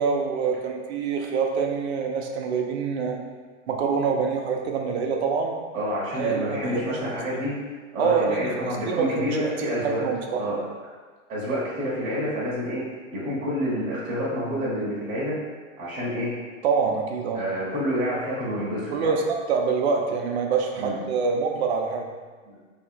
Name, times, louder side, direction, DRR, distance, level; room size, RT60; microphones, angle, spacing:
voice 1, 0.0-3.2 3.7-5.6 6.1-6.9 8.0-8.5 8.9-9.3 9.8-10.4 16.6-17.4 18.9-19.2 19.5-22.1, right 5 dB, 55° right, 2 dB, 0.6 m, -25 dB
voice 2, 5.7-7.5 7.9-10.0 10.3-10.6 11.3-12.8 13.1-15.3 15.8-16.3 17.3-19.1 20.8-21.0 22.4-22.6, equal, 15° right, -9 dB, 0.9 m, -28 dB
3.3 x 2.8 x 4.3 m, 1.5 s
supercardioid pair, 165°, 39 cm